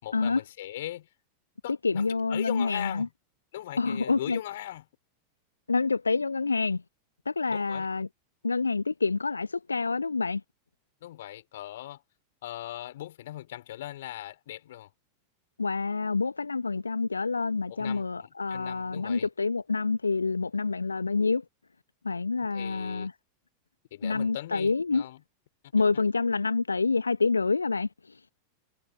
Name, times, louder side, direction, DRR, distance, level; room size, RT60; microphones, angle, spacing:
voice 1, 0.0-1.1 1.6-3.1 3.5-4.8 7.5-7.9 11.0-12.0 12.4-14.9 17.7-19.3 22.4-23.1 23.9-25.2, left 14 dB, 55° left, 4.6 m, -39 dB
voice 2, 1.7-3.1 3.8-4.4 5.7-6.8 7.2-8.1 8.4-10.4 15.6-21.4 22.0-23.1 24.0-25.1 25.7-27.9, left 4 dB, 80° left, 1.3 m, -27 dB
figure-of-eight pair, 90°, 0 cm